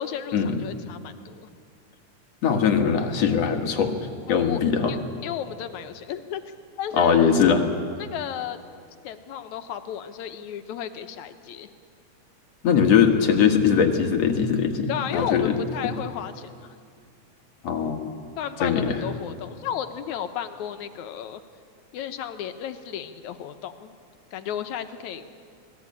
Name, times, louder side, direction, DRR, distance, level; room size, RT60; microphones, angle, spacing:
voice 1, 0.0-1.5 4.3-4.6 4.9-5.0 5.2-6.4 6.8-7.1 8.0-8.6 9.0-11.7 14.9-16.8 18.4-21.4 21.9-23.9 24.3-25.2, left 9 dB, 85° left, 9 dB, 2.4 m, -33 dB
voice 2, 2.4-3.9 4.3-4.9 7.0-7.6 12.6-15.5 17.6-18.1 18.6-19.0, left 7 dB, 65° left, 5 dB, 2.7 m, -21 dB
26.0 x 18.5 x 8.7 m, 2.2 s
omnidirectional pair, 3.3 m